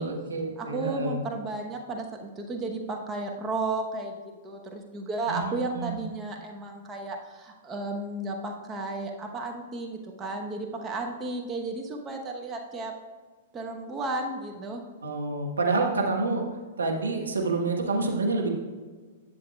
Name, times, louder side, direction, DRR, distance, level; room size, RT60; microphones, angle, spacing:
voice 1, 0.0-1.2 5.3-6.0 15.0-16.4 16.8-18.5, right 3 dB, 85° right, 1 dB, 1.3 m, -28 dB
voice 2, 0.6-12.9 13.5-14.8, right 2 dB, 20° right, 1 dB, 0.9 m, -33 dB
11.0 x 7.0 x 2.3 m, 1.4 s
figure-of-eight pair, 110°, 0 cm